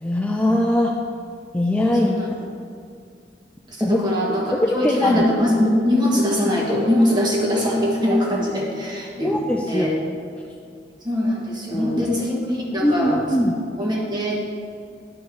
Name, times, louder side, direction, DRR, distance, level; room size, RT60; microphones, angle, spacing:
voice 1, 0.0-0.9 1.5-2.2 3.8-4.0 4.8-5.2 9.2-9.9 11.7-12.1 12.8-13.5, left 1 dB, 10° left, 0 dB, 0.4 m, -21 dB
voice 2, 3.7-9.4 9.7-10.0 11.0-13.2 13.8-14.4, left 1 dB, 25° right, -3 dB, 1.5 m, -22 dB
11.0 x 4.5 x 4.6 m, 2.3 s
head